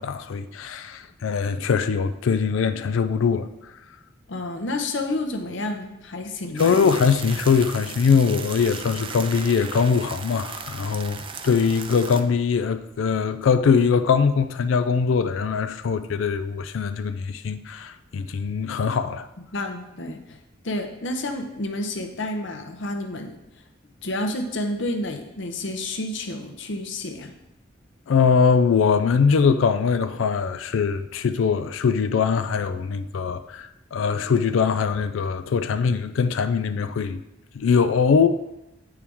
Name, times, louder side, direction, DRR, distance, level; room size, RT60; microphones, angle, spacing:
voice 1, 0.0-3.5 6.6-19.3 28.1-37.2 37.5-38.3, left 6 dB, 85° left, 0.4 m, -22 dB
voice 2, 4.3-6.7 19.5-20.4 20.6-23.3 24.0-27.3, left 1 dB, 65° left, 0.8 m, -30 dB
sound 1, 6.6-12.2, right 5 dB, 25° right, 0.4 m, -37 dB
8.3 x 4.6 x 3.5 m
head